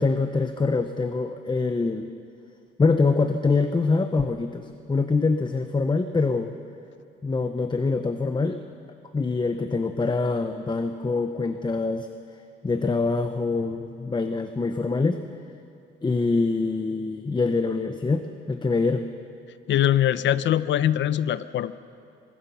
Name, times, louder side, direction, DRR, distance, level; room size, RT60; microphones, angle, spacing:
voice 1, 0.0-2.1 2.8-6.5 7.2-8.6 9.1-12.1 12.6-15.2 16.0-19.1, left 3 dB, 25° left, 8 dB, 1.0 m, -24 dB
voice 2, 19.7-21.7, left 11 dB, 70° left, 15 dB, 0.7 m, -22 dB
24.5 x 21.0 x 5.7 m, 2.5 s
cardioid pair, 90°, 20 cm